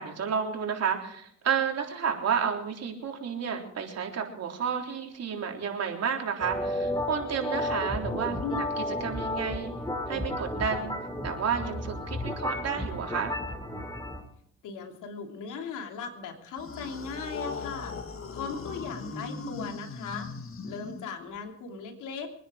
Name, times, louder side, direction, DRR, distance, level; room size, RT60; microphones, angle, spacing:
voice 1, 0.0-8.4 8.8-9.7 10.1-10.9 11.2-13.3, right 7 dB, 55° right, 2 dB, 3.6 m, -31 dB
sound 1, 6.4-14.2, left 1 dB, 15° left, 3.0 m, -33 dB
voice 2, 14.6-17.9 18.3-20.3 20.6-22.3, left 5 dB, 85° left, 4 dB, 3.0 m, -38 dB
sound 2, 16.5-21.4, left 4 dB, 45° left, 2.0 m, -38 dB
24.0 x 10.0 x 5.0 m, 0.70 s
cardioid pair, 90°, 30 cm